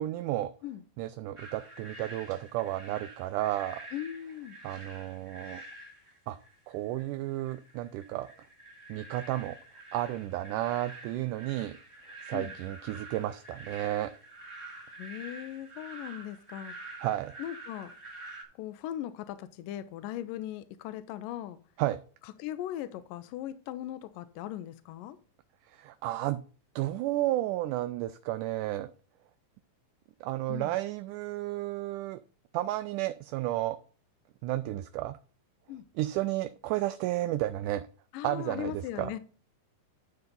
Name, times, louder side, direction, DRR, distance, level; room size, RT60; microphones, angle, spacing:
voice 1, 0.0-0.5 1.0-3.8 4.6-5.6 6.3-6.4 6.7-8.3 8.9-9.6 9.9-11.8 12.3-14.1 17.0-17.4 21.8-22.0 25.7-26.4 26.8-28.9 30.2-32.2 32.5-33.8 34.4-35.2 36.0-37.9 38.2-39.1, right 15 dB, 80° right, 1.9 m, -32 dB
sound 1, 1.4-18.4, right 2 dB, 10° right, 2.0 m, -47 dB
voice 2, 3.9-4.6 12.3-12.5 15.0-16.9 17.4-17.9 18.6-21.6 22.2-25.2 30.5-30.8 35.7-35.8 38.1-39.2, left 12 dB, 80° left, 2.2 m, -39 dB
12.0 x 4.0 x 5.2 m
omnidirectional pair, 4.0 m